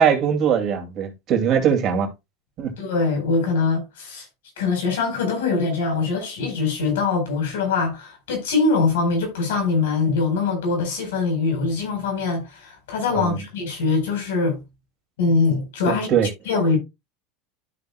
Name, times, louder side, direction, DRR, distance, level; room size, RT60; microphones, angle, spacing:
voice 1, 0.0-2.1 2.6-2.7 13.1-13.3 15.9-16.3, right 7 dB, 50° right, 2.3 m, -21 dB
voice 2, 2.8-4.3 4.6-14.6 15.2-16.1 16.5-16.8, left 4 dB, 85° left, 4.1 m, -23 dB
12.5 x 6.0 x 2.2 m
supercardioid pair, 100°, 0 cm